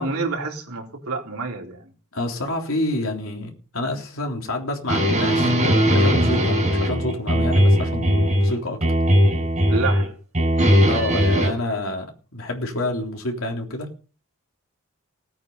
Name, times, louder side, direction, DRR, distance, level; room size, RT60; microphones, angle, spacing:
voice 1, 0.0-1.9 9.7-10.1, right 3 dB, 80° right, 3.8 m, -28 dB
voice 2, 2.1-5.5 5.9-8.8 10.9-13.9, left 1 dB, 70° left, 3.5 m, -28 dB
sound 1, 4.9-8.5 8.8-10.1 10.3-11.5, equal, 30° right, 6.4 m, -19 dB
17.5 x 8.8 x 5.5 m
head